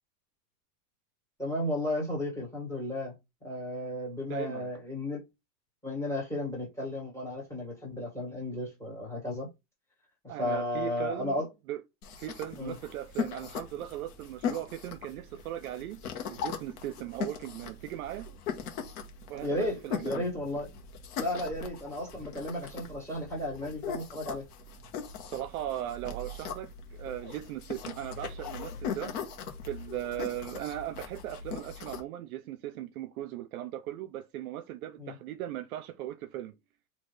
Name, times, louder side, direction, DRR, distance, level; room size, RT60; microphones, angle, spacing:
voice 1, 1.4-3.1 3.4-5.2 5.8-9.5 10.2-11.5 12.6-12.7 19.4-20.7 21.2-24.4 35.0-35.1, left 1 dB, 5° left, 1.7 m, -34 dB
voice 2, 4.3-4.7 10.3-11.8 12.2-16.0 16.3-18.3 19.3-20.3 25.3-29.2 29.6-36.5, right 12 dB, 60° right, 0.6 m, -38 dB
sound 1, 12.0-32.0, left 6 dB, 65° left, 1.3 m, -40 dB
4.2 x 2.8 x 3.2 m
supercardioid pair, 155°, 50 cm